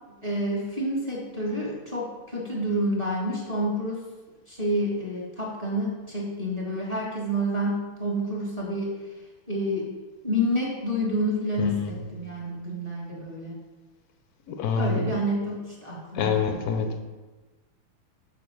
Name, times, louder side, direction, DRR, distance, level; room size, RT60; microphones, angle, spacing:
voice 1, 0.2-4.0 4.5-8.9 9.5-9.9 10.2-13.5 14.8-16.6, equal, 20° right, -4 dB, 1.4 m, -28 dB
voice 2, 11.6-11.9 14.5-15.0 16.1-17.0, left 5 dB, 65° left, 6 dB, 0.9 m, -26 dB
7.0 x 6.0 x 4.6 m, 1.2 s
omnidirectional pair, 2.4 m